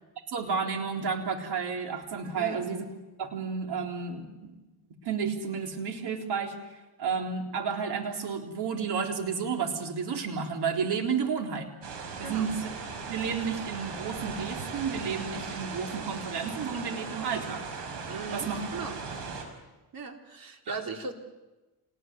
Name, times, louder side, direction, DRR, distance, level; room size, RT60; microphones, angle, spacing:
voice 1, 0.3-2.9 3.2-4.6 5.0-6.5 7.0-11.7 12.2-12.7 13.1-17.6 18.3-18.6 20.7-20.8, right 6 dB, 70° right, 3 dB, 3.7 m, -31 dB
voice 2, 2.3-2.6 12.2-12.5 18.1-19.0 19.9-21.1, right 4 dB, 55° right, 3 dB, 3.7 m, -38 dB
sound 1, 11.8-19.4, right 5 dB, 85° right, 5.6 m, -38 dB
27.0 x 20.0 x 9.3 m, 1.1 s
cardioid pair, 85°, 41 cm